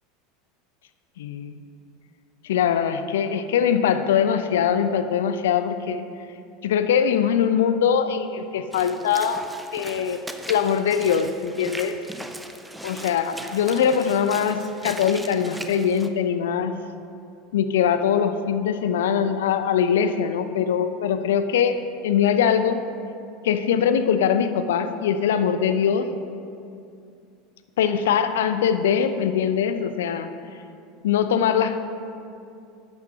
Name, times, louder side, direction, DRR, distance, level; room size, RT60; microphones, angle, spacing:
voice 1, 1.2-1.6 2.5-6.0 6.6-9.4 9.7-12.0 12.8-16.8 17.5-22.8 23.4-26.1 27.8-30.3 31.0-31.8, left 8 dB, 70° left, 10 dB, 0.5 m, -22 dB
Walk footsteps / Splash splatter, 8.7-16.1, right 1 dB, 5° right, 0.6 m, -39 dB
13.5 x 9.4 x 2.8 m, 2.5 s
figure-of-eight pair, 80°, 0 cm